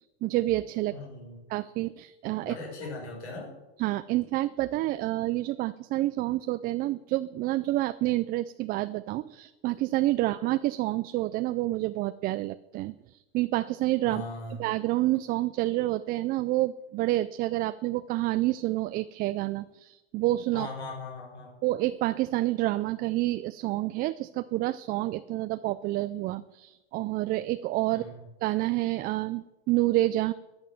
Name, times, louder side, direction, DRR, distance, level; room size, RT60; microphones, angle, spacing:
voice 1, 0.2-1.0 1.5-2.6 3.8-14.2 14.6-20.7 21.6-28.1 28.4-30.3, right 17 dB, 30° right, 12 dB, 0.4 m, -28 dB
voice 2, 0.9-1.4 2.4-3.5 14.1-14.6 20.5-21.6 27.9-28.3, left 3 dB, 90° left, -1 dB, 5.8 m, -39 dB
13.5 x 8.9 x 7.4 m, 1.1 s
supercardioid pair, 125°, 33 cm